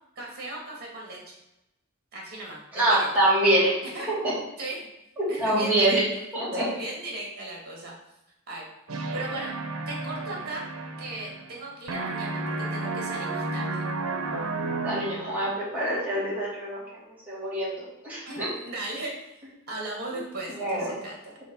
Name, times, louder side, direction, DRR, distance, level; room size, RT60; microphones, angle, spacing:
voice 1, 0.2-1.4 2.1-3.1 3.8-4.1 4.6-4.9 5.3-6.0 6.5-7.9 8.5-8.7 9.1-9.5 9.9-10.7 11.0-13.8 18.3-19.3 19.7-21.3, right 2 dB, 45° right, -2 dB, 2.3 m, -37 dB
voice 2, 2.7-3.7 4.2-4.3 5.2-6.0 6.3-6.6 14.6-16.8 17.3-18.5 20.1-20.2 20.6-20.9, right 1 dB, 5° right, -8 dB, 2.5 m, -25 dB
sound 1, 8.9-11.6 11.9-15.5, right 3 dB, 75° right, 0.9 m, -32 dB
5.1 x 4.1 x 5.5 m, 0.89 s
head